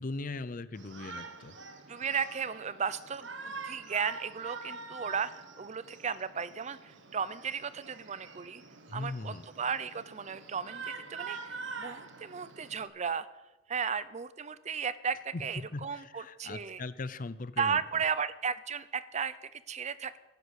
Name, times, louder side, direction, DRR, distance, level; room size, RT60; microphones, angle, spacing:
voice 1, 0.0-1.5 8.9-9.4 15.3-15.4 15.7-17.8, left 3 dB, 45° left, 15 dB, 0.6 m, -39 dB
Shout, 0.7-12.9, right 4 dB, 70° right, 1.4 m, -45 dB
voice 2, 1.9-8.6 8.9-13.3 13.7-16.8 17.6-20.2, right 6 dB, 35° right, 16 dB, 0.6 m, -35 dB
12.0 x 9.8 x 8.2 m, 1.1 s
head